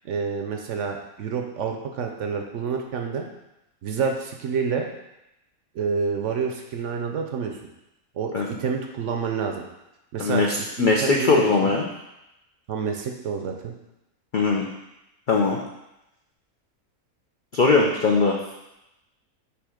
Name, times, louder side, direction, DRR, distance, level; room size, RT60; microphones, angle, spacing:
voice 1, 0.0-3.3 3.8-4.9 5.7-7.6 8.2-9.6 10.1-11.8 12.7-13.7, right 5 dB, 65° right, 3 dB, 0.9 m, -28 dB
voice 2, 10.2-11.9 14.3-14.7 15.3-15.6 17.5-18.4, left 4 dB, 65° left, 0 dB, 0.4 m, -20 dB
6.9 x 2.9 x 4.9 m, 0.90 s
omnidirectional pair, 1.5 m